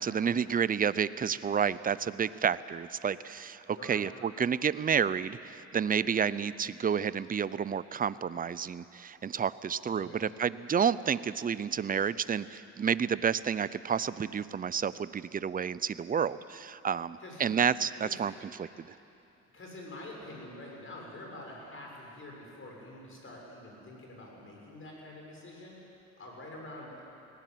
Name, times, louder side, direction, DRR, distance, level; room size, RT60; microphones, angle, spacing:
voice 1, 0.0-18.9, right 7 dB, 30° right, 17 dB, 0.6 m, -30 dB
voice 2, 3.7-4.1 9.8-10.2 17.2-17.6 18.0-18.2 19.5-27.0, left 1 dB, 45° left, -1 dB, 6.9 m, -46 dB
19.0 x 16.5 x 9.2 m, 2.8 s
cardioid pair, 90°, 30 cm